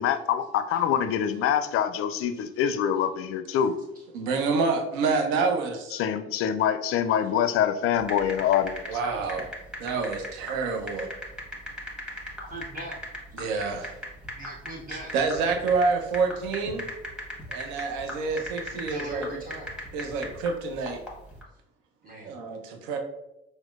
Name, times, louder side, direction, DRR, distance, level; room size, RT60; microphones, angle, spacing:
voice 1, 0.0-3.7 5.9-9.0, left 9 dB, 45° left, 10 dB, 0.4 m, -25 dB
voice 2, 4.1-6.0 8.9-9.5 9.8-11.1 13.3-13.9 15.1-16.9 17.5-19.3 19.9-21.0 22.2-23.0, right 4 dB, 65° right, 4 dB, 0.7 m, -27 dB
sound 1, 8.0-21.4, equal, 5° right, 1.4 m, -38 dB
voice 3, 12.5-13.0 14.3-15.1 17.2-17.4 18.9-19.7 22.0-22.3, right 1 dB, 25° right, -5 dB, 1.5 m, -39 dB
5.9 x 2.1 x 2.4 m, 0.88 s
figure-of-eight pair, 50°, 31 cm